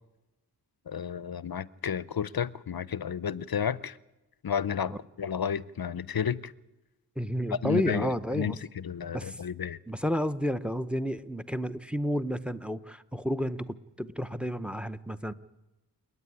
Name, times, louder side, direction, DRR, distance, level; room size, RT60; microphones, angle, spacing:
voice 1, 0.9-4.0 4.4-6.5 7.5-9.8, left 7 dB, 55° left, 0.7 m, -32 dB
voice 2, 7.2-8.6 9.1-9.4 9.9-15.3, equal, 5° right, 0.9 m, -31 dB
28.5 x 9.6 x 9.7 m
cardioid pair, 55°, 42 cm